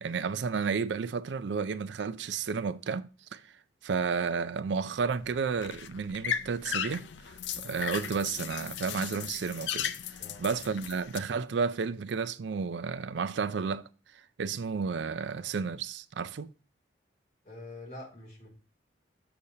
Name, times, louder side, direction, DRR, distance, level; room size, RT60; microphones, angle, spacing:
voice 1, 0.0-3.4 3.8-7.1 7.6-9.9 10.4-13.8 14.4-16.5, right 5 dB, 75° right, 0.4 m, -32 dB
sound 1, 5.0-11.2, left 8 dB, 75° left, 0.5 m, -37 dB
voice 2, 17.4-18.5, left 2 dB, 40° left, 2.7 m, -45 dB
6.9 x 6.5 x 2.7 m
head